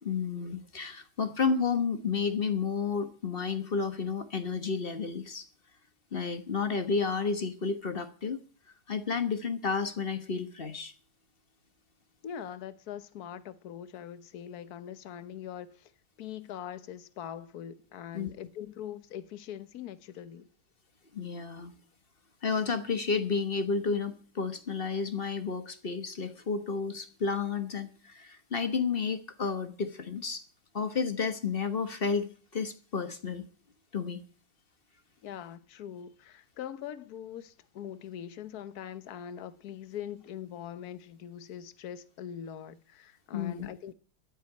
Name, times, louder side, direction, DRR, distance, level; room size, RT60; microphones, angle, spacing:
voice 1, 0.0-5.5 6.1-8.4 8.9-10.9 18.1-18.3 21.1-21.7 22.4-30.4 30.7-33.4 33.9-34.2 43.3-43.7, left 5 dB, 35° left, 1.1 m, -31 dB
voice 2, 12.2-15.9 16.2-20.5 35.2-43.9, left 9 dB, 60° left, 1.3 m, -42 dB
14.0 x 8.4 x 9.4 m
omnidirectional pair, 2.1 m